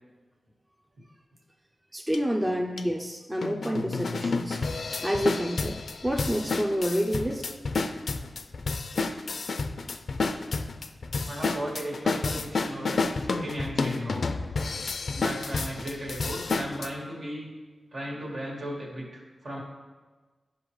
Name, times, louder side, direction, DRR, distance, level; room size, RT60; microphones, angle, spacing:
voice 1, 1.9-4.6 4.9-7.5, equal, 15° right, 3 dB, 0.6 m, -28 dB
sound 1, 2.1-2.2 2.8-2.9 3.4-16.9, left 3 dB, 70° left, 0.4 m, -30 dB
voice 2, 11.3-14.3 15.1-17.5 17.9-19.6, right 1 dB, 70° right, -4 dB, 2.1 m, -36 dB
10.5 x 5.1 x 3.2 m, 1.3 s
cardioid pair, 60°, 0 cm